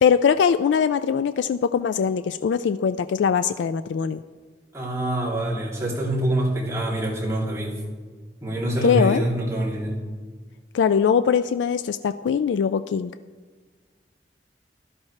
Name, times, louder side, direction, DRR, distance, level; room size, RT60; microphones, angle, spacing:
voice 1, 0.0-4.2 8.8-9.3 10.7-13.1, left 7 dB, 80° left, 12 dB, 0.3 m, -21 dB
voice 2, 4.7-7.7 8.4-10.0, right 1 dB, 15° right, -6 dB, 2.9 m, -25 dB
15.0 x 11.5 x 3.2 m, 1.4 s
head